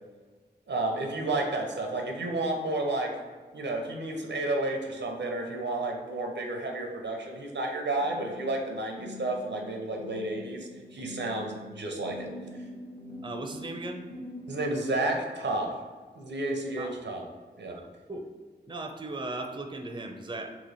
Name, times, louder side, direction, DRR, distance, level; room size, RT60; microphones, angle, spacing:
voice 1, 0.7-3.2 3.5-12.3 14.5-15.8 16.2-17.2 17.6-17.8, right 2 dB, 85° right, 2 dB, 0.6 m, -31 dB
sound 1, 8.0-14.8, left 1 dB, 50° left, 1.1 m, -44 dB
voice 2, 13.2-14.1 16.8-16.9 17.7-18.3 18.7-20.5, right 2 dB, 25° right, 4 dB, 0.5 m, -37 dB
3.0 x 2.9 x 4.0 m, 1.4 s
cardioid pair, 40°, 18 cm